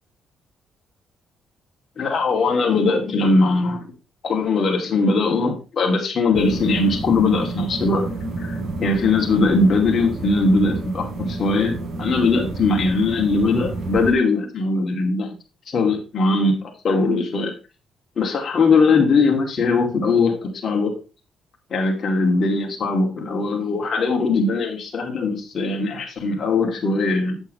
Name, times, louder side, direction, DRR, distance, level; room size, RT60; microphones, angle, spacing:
voice 1, 2.0-3.9 4.2-15.4 15.7-17.5 18.2-20.9 21.7-27.4, left 3 dB, 50° left, 1 dB, 2.6 m, -20 dB
sound 1, 6.3-14.1, right 3 dB, 60° right, 4.1 m, -30 dB
8.1 x 7.9 x 3.3 m, 0.31 s
cardioid pair, 90°, 0 cm